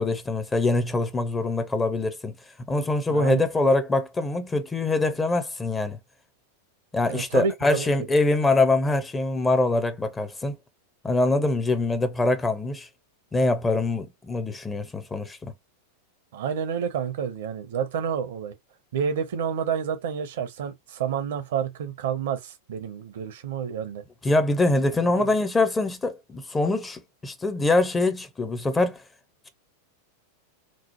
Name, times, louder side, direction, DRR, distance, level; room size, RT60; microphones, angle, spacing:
voice 1, 0.0-2.3 2.7-6.0 6.9-10.6 11.0-12.9 13.3-15.5 24.2-29.0, left 2 dB, 15° left, 0.6 m, -24 dB
voice 2, 3.1-3.4 7.1-7.9 16.3-18.5 18.9-24.0, right 7 dB, 55° right, 0.6 m, -29 dB
2.9 x 2.0 x 2.8 m
figure-of-eight pair, 90°, 0 cm